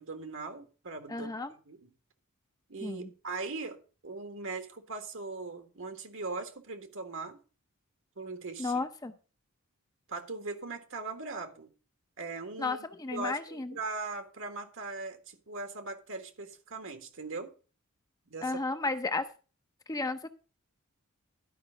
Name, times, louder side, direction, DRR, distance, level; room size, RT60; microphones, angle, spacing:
voice 1, 0.0-1.3 1.7-1.9 2.7-7.4 8.2-8.8 10.1-11.7 12.2-17.5 18.3-18.5, right 3 dB, 65° right, 1.6 m, -40 dB
voice 2, 1.1-1.5 2.8-3.1 8.6-9.1 12.6-13.8 18.4-19.3 19.9-20.3, left 3 dB, 15° left, 0.6 m, -33 dB
11.5 x 5.3 x 5.3 m
head